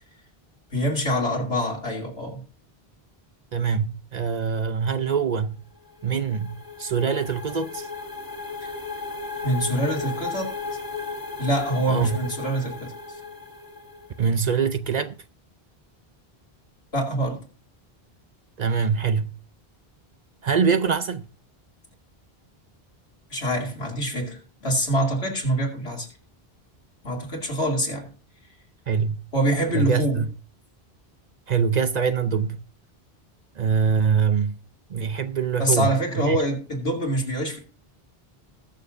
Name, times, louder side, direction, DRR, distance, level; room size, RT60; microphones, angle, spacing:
voice 1, 0.7-2.4 8.6-8.7 9.4-10.5 11.4-12.9 16.9-17.4 23.3-26.1 27.0-28.1 29.3-30.2 35.6-37.6, right 1 dB, 85° left, 2.9 m, -25 dB
voice 2, 3.5-5.6 6.0-7.9 11.9-12.2 14.2-15.2 18.6-19.3 20.4-21.3 28.9-29.2 29.7-30.3 31.5-32.6 33.6-34.6 34.9-36.4, right 6 dB, 50° right, 0.6 m, -24 dB
sound 1, 5.7-14.4, left 4 dB, 20° left, 1.6 m, -35 dB
20.0 x 6.9 x 2.5 m
omnidirectional pair, 1.0 m